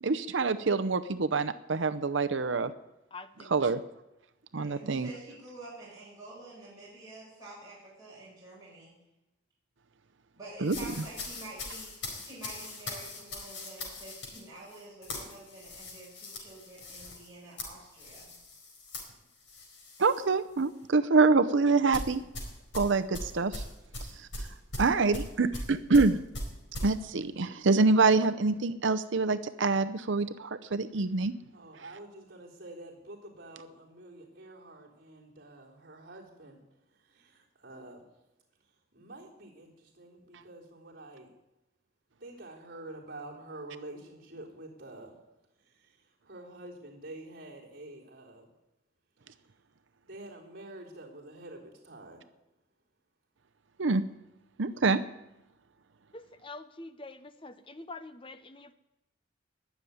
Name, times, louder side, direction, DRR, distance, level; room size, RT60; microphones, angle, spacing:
voice 1, 0.0-2.7 3.5-3.8 4.5-5.1 10.6-10.8 20.0-22.2 22.7-23.6 24.2-24.5 24.8-26.2 26.8-31.3 53.8-54.0 54.6-55.0, right 4 dB, 70° right, 10 dB, 0.7 m, -26 dB
voice 2, 3.1-3.5 56.1-58.7, left 3 dB, 25° left, 11 dB, 0.7 m, -45 dB
voice 3, 4.6-8.9 10.4-18.3, right 2 dB, 15° right, -8 dB, 7.3 m, -48 dB
sound 1, 10.6-20.3 20.6-20.9 21.9-26.9, left 1 dB, 70° left, 4.6 m, -40 dB
voice 4, 31.5-36.6 37.0-38.0 38.9-41.3 42.2-45.2 45.7-46.0 46.2-48.5 50.0-52.2, right 2 dB, 50° right, -4 dB, 3.7 m, -47 dB
21.0 x 7.2 x 9.3 m, 0.94 s
head